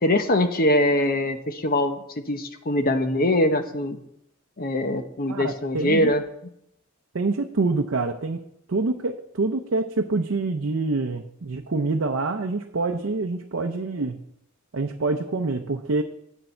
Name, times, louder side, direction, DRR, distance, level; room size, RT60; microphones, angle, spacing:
voice 1, 0.0-4.0 4.6-6.2, left 1 dB, 45° left, 7 dB, 0.9 m, -23 dB
voice 2, 5.3-6.1 7.1-8.4 8.7-14.2 14.7-16.0, right 3 dB, 65° right, 4 dB, 0.6 m, -26 dB
9.5 x 8.9 x 4.4 m, 0.76 s
head